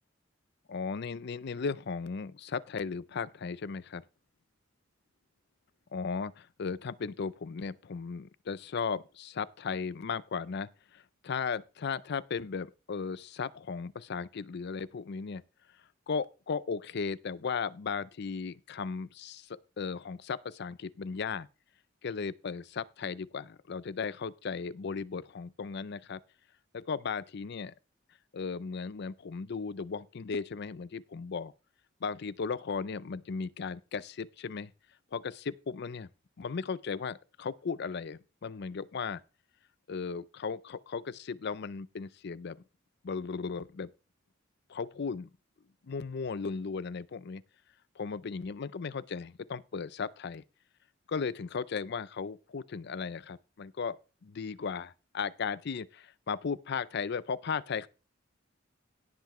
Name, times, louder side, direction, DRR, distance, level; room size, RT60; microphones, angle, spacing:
voice 1, 0.7-4.0 5.9-15.4 16.1-19.5 19.8-21.5 22.0-26.2 26.7-27.7 28.3-31.5 32.0-34.7 35.1-36.1 36.4-39.2 39.9-42.6 43.0-43.9 44.7-45.3 45.9-47.4 48.0-50.4 51.1-54.0 54.2-57.9, left 5 dB, 60° left, 0.5 m, -36 dB
17.5 x 5.8 x 3.1 m
head